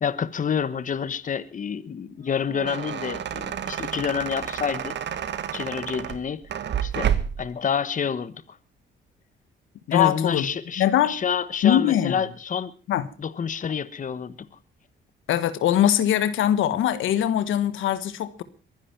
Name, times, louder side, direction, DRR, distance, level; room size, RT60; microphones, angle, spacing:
voice 1, 0.0-5.0 5.5-6.4 6.8-7.1 7.4-8.6 9.9-12.7 13.2-14.4, left 7 dB, 40° left, 15 dB, 1.2 m, -28 dB
sound 1, 2.3-7.5, right 9 dB, 60° right, 1.6 m, -30 dB
voice 2, 9.9-10.5 10.8-11.2 11.6-12.2 12.9-13.1 15.3-18.4, left 11 dB, 80° left, 13 dB, 1.4 m, -22 dB
23.0 x 10.0 x 5.9 m, 0.38 s
cardioid pair, 90°, 20 cm